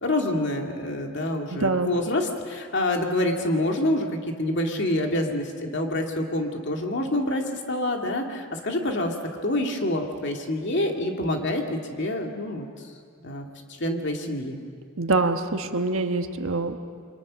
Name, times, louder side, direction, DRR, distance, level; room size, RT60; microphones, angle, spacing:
voice 1, 0.0-7.4 7.7-9.1 9.4-12.7 13.2-13.5 13.8-14.6, left 1 dB, 55° left, 2 dB, 2.4 m, -27 dB
voice 2, 1.5-1.9 15.0-16.8, right 3 dB, 70° right, 6 dB, 1.4 m, -25 dB
28.5 x 23.5 x 6.4 m, 2.1 s
head